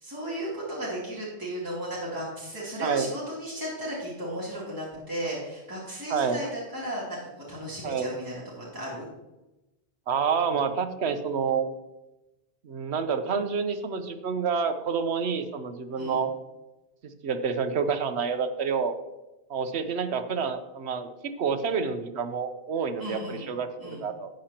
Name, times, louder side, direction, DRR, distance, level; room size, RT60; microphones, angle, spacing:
voice 1, 0.0-7.2 7.5-9.1 16.0-16.2 23.0-23.5 23.8-24.1, equal, 20° right, -8 dB, 3.0 m, -35 dB
voice 2, 6.1-6.4 7.8-8.1 10.1-11.7 12.6-16.3 17.2-19.0 19.5-24.3, right 6 dB, 80° right, 9 dB, 1.1 m, -28 dB
13.0 x 8.8 x 2.9 m, 1.0 s
omnidirectional pair, 1.1 m